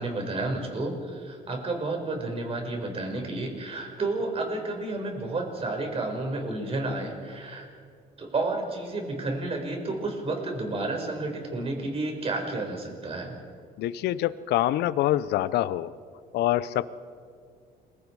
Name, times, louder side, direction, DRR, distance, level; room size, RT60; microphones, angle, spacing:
voice 1, 0.0-7.7 8.2-13.4, right 2 dB, 35° right, 2 dB, 5.5 m, -31 dB
voice 2, 13.8-15.9 16.3-16.9, left 14 dB, 80° left, 16 dB, 0.7 m, -25 dB
30.0 x 23.0 x 4.8 m, 2.2 s
cardioid pair, 110°, 17 cm